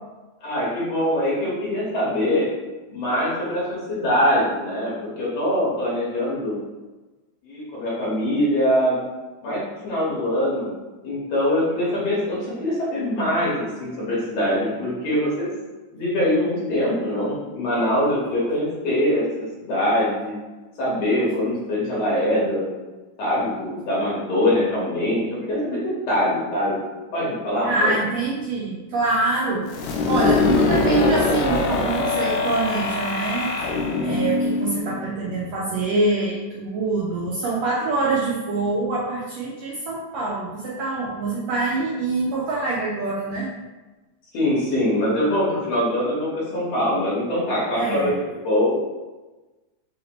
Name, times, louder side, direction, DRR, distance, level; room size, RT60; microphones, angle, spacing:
voice 1, 0.4-2.5 2.9-6.5 7.4-9.0 9.4-10.7 11.0-15.5 15.9-19.2 19.6-20.3 20.8-22.7 23.2-25.8 26.1-26.8 27.1-27.9 44.3-48.1 48.4-48.7, left 1 dB, 60° left, -8 dB, 2.2 m, -23 dB
voice 2, 27.6-33.5 34.0-43.5 47.7-48.2, right 3 dB, 90° right, -5 dB, 1.5 m, -25 dB
sound 1, 29.7-35.4, left 3 dB, 80° left, 1.7 m, -23 dB
5.3 x 2.8 x 3.0 m, 1.2 s
omnidirectional pair, 3.7 m